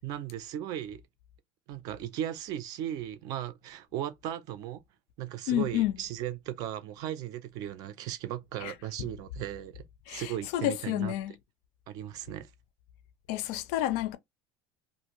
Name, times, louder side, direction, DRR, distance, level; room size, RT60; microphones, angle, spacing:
voice 1, 0.0-1.0 1.7-4.8 5.2-11.1 11.9-12.5, right 11 dB, 40° right, 0.4 m, -37 dB
voice 2, 5.5-6.0 8.6-8.7 10.1-11.3 13.3-14.2, left 13 dB, 60° left, 0.4 m, -30 dB
2.6 x 2.5 x 2.9 m
cardioid pair, 180°, 10 cm